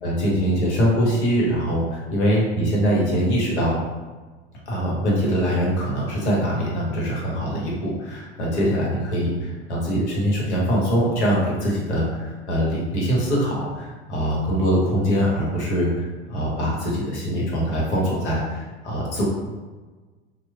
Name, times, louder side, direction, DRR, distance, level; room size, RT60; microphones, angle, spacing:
voice 1, 0.0-3.8 4.7-19.3, equal, 75° left, -4 dB, 1.0 m, -23 dB
2.9 x 2.1 x 2.2 m, 1.3 s
figure-of-eight pair, 80°, 34 cm